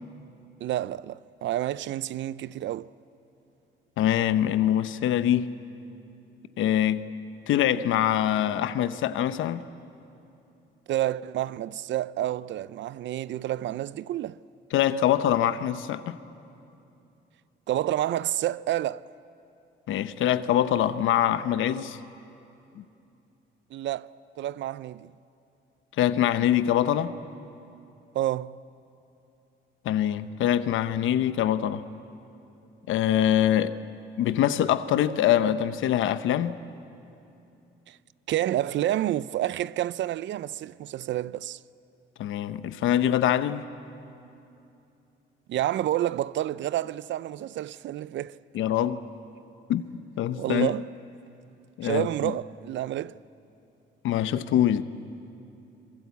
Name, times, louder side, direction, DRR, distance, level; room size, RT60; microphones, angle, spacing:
voice 1, 0.6-2.9 10.9-14.4 17.7-19.0 23.7-24.1 24.4-25.1 28.1-28.6 37.9-38.0 38.3-41.6 45.5-48.3 50.4-50.9 51.8-53.1, right 13 dB, 70° right, 0.5 m, -29 dB
voice 2, 4.0-5.5 6.6-7.0 7.5-9.6 14.7-16.2 19.9-22.0 22.8-22.9 26.0-27.1 29.8-31.8 32.9-33.7 34.2-36.6 42.2-43.6 48.5-49.0 49.7-49.8 50.2-50.7 51.8-52.4 54.0-54.8, left 11 dB, 80° left, 0.9 m, -24 dB
27.0 x 22.0 x 8.3 m
cardioid pair, 90°, 20 cm